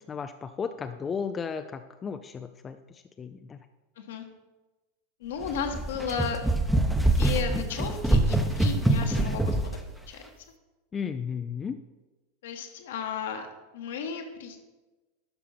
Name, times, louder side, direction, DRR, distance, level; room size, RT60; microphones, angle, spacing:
voice 1, 0.1-3.6 10.9-11.8, left 6 dB, 25° left, 8 dB, 0.4 m, -34 dB
voice 2, 5.2-6.4 7.0-9.6 10.1-10.2 12.4-13.5 13.7-14.6, left 6 dB, 65° left, 5 dB, 1.3 m, -34 dB
sound 1, 5.4-9.8, right 1 dB, 5° right, 0.9 m, -25 dB
12.0 x 5.6 x 4.3 m, 1.2 s
figure-of-eight pair, 85°, 0 cm